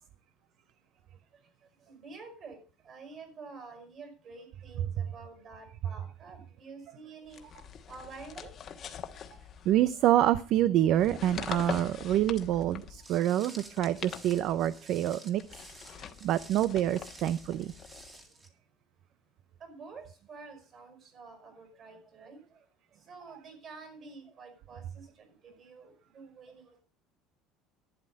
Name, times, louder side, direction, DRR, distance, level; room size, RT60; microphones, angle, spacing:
voice 1, 1.9-2.6 2.8-7.4 7.9-8.5 14.2-14.3 19.6-22.7 23.1-26.8, right 4 dB, 35° right, 7 dB, 5.2 m, -49 dB
sound 1, 7.3-10.1 10.9-13.1 13.6-14.8 15.3-18.2, left 8 dB, 35° left, 1.2 m, -43 dB
voice 2, 9.7-15.4 16.2-17.7, right 12 dB, 50° right, 16 dB, 0.5 m, -26 dB
Walk footsteps, 13.0-18.5, right 2 dB, 15° right, 2.0 m, -52 dB
12.0 x 10.0 x 5.3 m, 0.39 s
cardioid pair, 155°, 0 cm